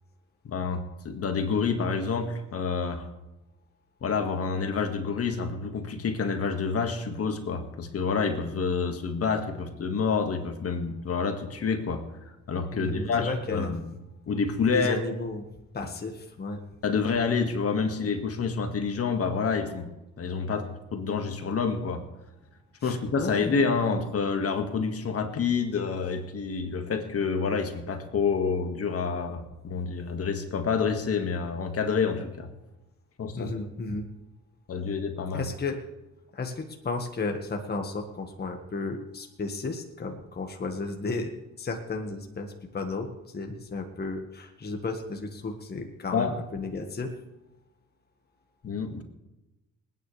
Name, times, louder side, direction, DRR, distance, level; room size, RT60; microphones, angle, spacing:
voice 1, 0.5-3.1 4.0-12.0 12.5-13.8 14.3-15.0 16.8-19.9 20.2-22.0 22.8-32.5 33.2-33.5 34.7-35.4 46.1-46.3 48.6-49.0, left 5 dB, 50° left, 5 dB, 1.9 m, -28 dB
voice 2, 12.7-13.7 14.7-15.4 15.7-16.6 22.8-23.6 33.3-34.1 35.3-35.8 36.3-41.3 41.6-47.1, left 3 dB, 30° left, 3 dB, 1.6 m, -33 dB
27.5 x 9.6 x 3.3 m, 0.98 s
cardioid pair, 90°, 30 cm